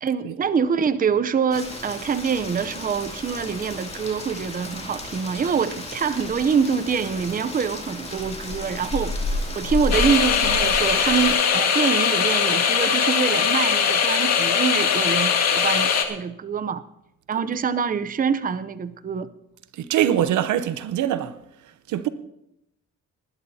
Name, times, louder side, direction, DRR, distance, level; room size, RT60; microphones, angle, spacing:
voice 1, 0.0-9.1 9.5-16.8 17.3-19.3, right 6 dB, 30° right, 0.6 m, -25 dB
Rain, 1.5-11.3, left 2 dB, 20° left, 2.7 m, -32 dB
sound 1, 9.9-16.0, left 7 dB, 60° left, 1.8 m, -21 dB
voice 2, 19.7-21.4 21.9-22.1, right 11 dB, 75° right, 0.8 m, -23 dB
19.0 x 12.0 x 2.8 m
cardioid pair, 90°, 30 cm